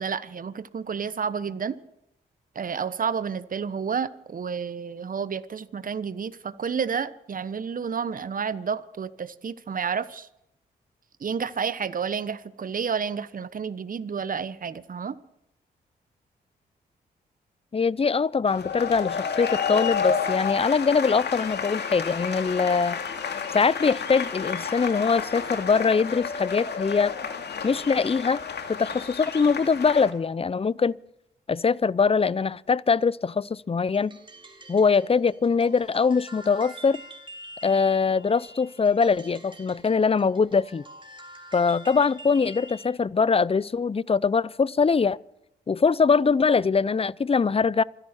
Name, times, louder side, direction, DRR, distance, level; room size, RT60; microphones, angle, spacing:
voice 1, 0.0-1.7 2.5-10.3 11.2-15.2, right 6 dB, 45° right, 1.1 m, -30 dB
voice 2, 17.7-23.0 23.5-27.1 27.6-28.4 28.7-31.0 31.5-34.2 34.7-37.0 37.6-40.8 41.5-45.2 45.7-47.8, left 5 dB, 30° left, 0.7 m, -22 dB
sound 1, 18.5-30.1, left 6 dB, 65° left, 2.4 m, -31 dB
sound 2, 33.9-43.0, right 1 dB, 25° right, 4.0 m, -46 dB
27.0 x 11.0 x 4.4 m
supercardioid pair, 45°, 19 cm